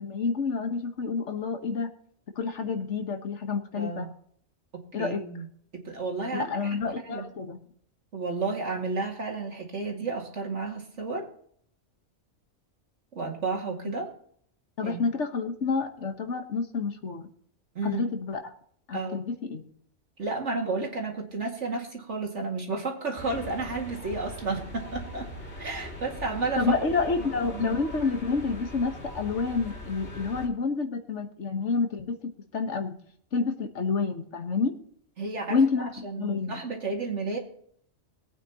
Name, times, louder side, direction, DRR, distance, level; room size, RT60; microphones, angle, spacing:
voice 1, 0.0-1.9 2.3-4.1 4.9-5.2 6.3-7.6 14.8-17.3 17.8-18.5 18.9-19.7 26.6-32.9 33.3-34.8 35.5-35.9 36.2-36.6, left 4 dB, 70° left, 6 dB, 1.6 m, -29 dB
voice 2, 3.8-4.1 5.0-5.5 5.7-6.8 7.0-7.3 8.1-11.3 13.1-14.1 14.8-15.0 17.7-18.1 18.9-19.2 20.2-25.3 25.6-26.6 27.2-27.3 27.5-27.8 35.2-37.4, right 3 dB, 70° right, 0 dB, 2.5 m, -32 dB
sound 1, 23.2-30.5, left 1 dB, 55° left, 3.1 m, -41 dB
21.0 x 9.0 x 3.0 m, 0.63 s
omnidirectional pair, 1.3 m